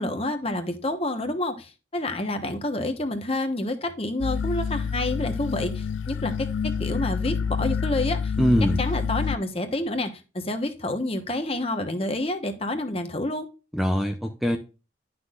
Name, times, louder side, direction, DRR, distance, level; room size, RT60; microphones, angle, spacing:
voice 1, 0.0-8.3 8.8-13.5, left 1 dB, 30° left, 1.1 m, -28 dB
sound 1, 4.2-9.4, left 6 dB, 85° left, 0.3 m, -28 dB
voice 2, 8.4-8.8 13.7-14.6, equal, ahead, 0.6 m, -22 dB
11.5 x 6.0 x 2.5 m
head